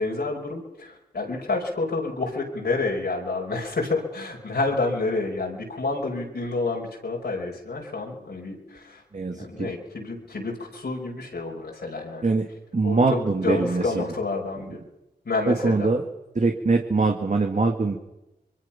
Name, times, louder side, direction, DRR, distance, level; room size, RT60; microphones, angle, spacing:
voice 1, 0.0-9.0 9.3-12.3 12.8-14.8 15.3-15.9, left 3 dB, 65° left, -2 dB, 5.0 m, -29 dB
voice 2, 9.1-9.7 12.2-12.5 12.7-14.0 14.7-14.8 15.5-16.0 16.4-18.0, right 3 dB, 40° right, 3 dB, 2.2 m, -23 dB
27.5 x 22.5 x 5.9 m, 0.96 s
cardioid pair, 50°, 19 cm